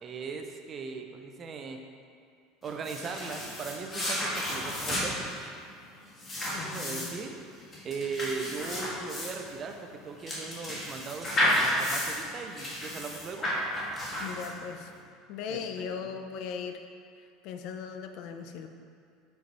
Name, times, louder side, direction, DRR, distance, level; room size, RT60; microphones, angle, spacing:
voice 1, 0.0-1.8 2.6-5.5 6.6-7.4 7.8-13.5 15.5-16.2, right 5 dB, 30° right, 4 dB, 0.5 m, -39 dB
sound 1, 2.6-14.8, left 1 dB, 25° left, 1.4 m, -32 dB
voice 2, 6.5-7.1 14.2-14.9 15.3-16.8 17.4-18.7, left 6 dB, 60° left, 6 dB, 0.4 m, -38 dB
5.1 x 4.5 x 4.1 m, 2.3 s
supercardioid pair, 140°, 0 cm